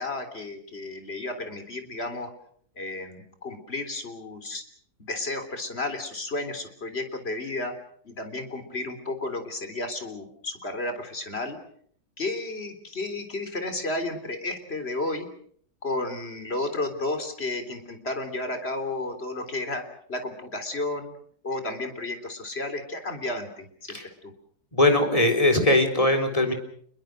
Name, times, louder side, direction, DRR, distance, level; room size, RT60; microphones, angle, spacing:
voice 1, 0.0-2.3 2.8-4.6 5.0-7.7 8.0-11.6 12.2-15.3 15.8-19.8 20.1-21.1 21.4-24.3, left 2 dB, 40° left, 8 dB, 3.8 m, -32 dB
voice 2, 24.7-26.5, left 1 dB, 20° left, 4 dB, 3.9 m, -21 dB
28.5 x 22.0 x 6.5 m, 0.62 s
omnidirectional pair, 1.7 m